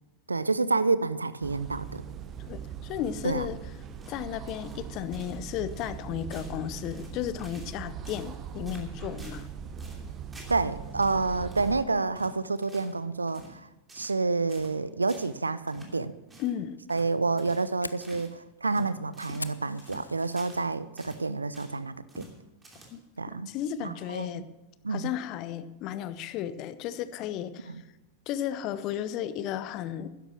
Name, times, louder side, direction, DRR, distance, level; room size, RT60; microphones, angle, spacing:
voice 1, 0.3-2.0 3.2-3.5 10.5-13.7 13.9-16.1 16.9-22.3 23.2-23.5 23.8-24.4 24.8-25.1 27.7-27.8, right 3 dB, 80° right, 17 dB, 0.5 m, -29 dB
sound 1, 1.4-11.8, right 7 dB, 30° right, 1.0 m, -40 dB
voice 2, 2.4-3.6 4.1-9.5 16.4-16.8 22.9-23.0 23.5-24.5 24.9-27.8 28.3-30.1, left 10 dB, 40° left, 14 dB, 0.8 m, -34 dB
sound 2, 4.0-4.9 5.1-5.4 5.7-6.0 6.3-6.6 6.9-7.8 8.1-8.4 8.7-9.5 9.8-10.7 11.0-11.2 11.5-11.8 12.2-13.0 13.3-13.6 13.9-14.2 14.5-14.8 15.1-15.4 15.7-16.0 16.3-16.5 16.9-17.1 17.4-17.7 18.0-18.3 18.7-20.7 21.0-21.8 22.1-22.4 22.6-23.2, right 2 dB, 15° right, 2.9 m, -50 dB
Fire, 17.2-20.8 21.2-21.6 22.0-22.1 22.6-23.0, left 3 dB, 80° left, 0.5 m, -43 dB
12.0 x 10.5 x 6.1 m, 1.0 s
figure-of-eight pair, 90°, 0 cm